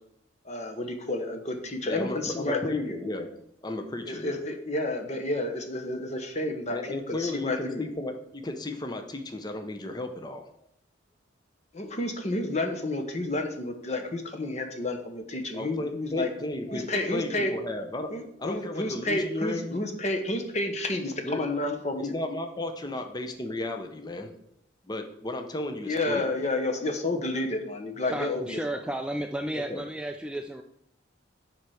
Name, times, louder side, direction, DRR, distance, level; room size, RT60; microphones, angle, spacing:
voice 1, 0.4-3.0 4.0-7.9 11.7-16.3 16.7-17.5 18.1-22.1 25.8-28.8, left 2 dB, 35° left, 5 dB, 1.1 m, -30 dB
voice 2, 1.8-3.3 3.6-4.4 6.7-10.5 15.5-18.1 18.4-19.8 21.2-21.4 21.9-24.3 24.9-26.3 29.5-29.8, left 2 dB, 20° left, 6 dB, 0.7 m, -34 dB
voice 3, 28.0-30.6, right 1 dB, 5° right, 5 dB, 0.3 m, -33 dB
7.2 x 4.6 x 6.3 m, 0.73 s
head